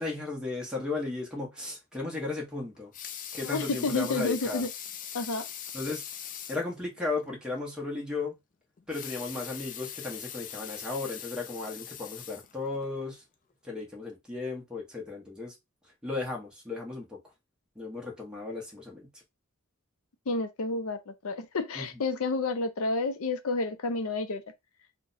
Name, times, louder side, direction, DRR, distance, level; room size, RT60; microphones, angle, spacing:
voice 1, 0.0-2.9 3.3-4.6 5.7-6.0 6.5-8.3 8.9-13.2 13.6-15.5 16.0-17.2 17.8-19.1 21.8-21.9, left 3 dB, 5° right, 0.9 m, -35 dB
Water tap faucet / Sink (filling or washing) / Liquid, 2.7-6.7 7.2-7.3 7.6-7.7 8.8-12.9 13.5-13.6, left 9 dB, 40° left, 0.3 m, -41 dB
voice 2, 3.4-4.7 5.1-5.5 20.3-24.4, left 3 dB, 80° left, 0.6 m, -30 dB
2.7 x 2.2 x 3.9 m
head